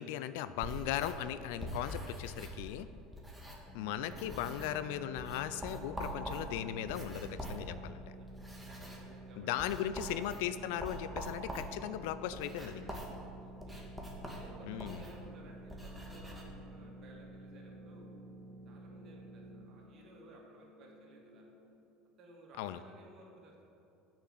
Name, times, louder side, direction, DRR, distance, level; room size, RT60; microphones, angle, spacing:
voice 1, 0.0-2.9 3.7-8.0 9.4-13.0 14.6-15.0 22.6-22.8, left 11 dB, 70° left, 13 dB, 0.4 m, -38 dB
sound 1, 0.5-3.8 4.1-4.9 5.2-16.4, equal, 5° right, 1.8 m, -45 dB
sound 2, 3.7-19.6, right 2 dB, 25° left, 1.3 m, -52 dB
voice 2, 8.0-8.5 8.8-10.2 13.3-13.9 14.2-18.1 18.7-21.5 22.2-23.6, right 1 dB, 45° right, -1 dB, 2.1 m, -58 dB
sound 3, 9.9-21.8, left 2 dB, 90° left, 0.8 m, -61 dB
6.6 x 5.9 x 7.5 m, 2.9 s
hypercardioid pair, 75°, 0 cm